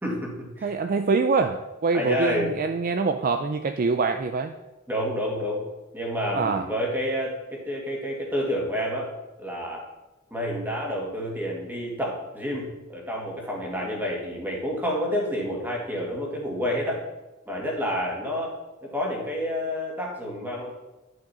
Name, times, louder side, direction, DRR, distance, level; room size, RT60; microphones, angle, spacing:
voice 1, 0.0-0.7 1.9-2.5 4.9-5.6 5.9-9.1 9.4-9.8 10.3-17.0 17.5-18.5 18.8-20.7, equal, 10° right, -2 dB, 1.9 m, -29 dB
voice 2, 0.6-4.5 6.3-6.7, right 4 dB, 45° right, 7 dB, 0.4 m, -24 dB
10.0 x 6.4 x 4.3 m, 1.0 s
head